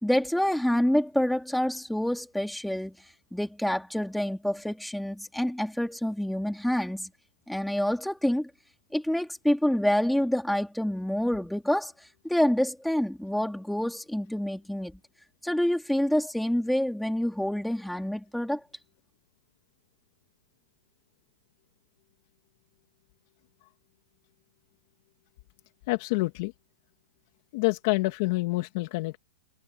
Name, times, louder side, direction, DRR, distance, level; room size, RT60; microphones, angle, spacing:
voice 1, 0.0-3.0 3.3-7.1 7.5-8.5 8.9-11.9 12.2-15.0 15.4-18.6, left 1 dB, ahead, 2.6 m, -27 dB
voice 2, 25.9-26.5 27.5-29.2, left 23 dB, 45° left, 1.7 m, -27 dB
hypercardioid pair, 155°, 2 cm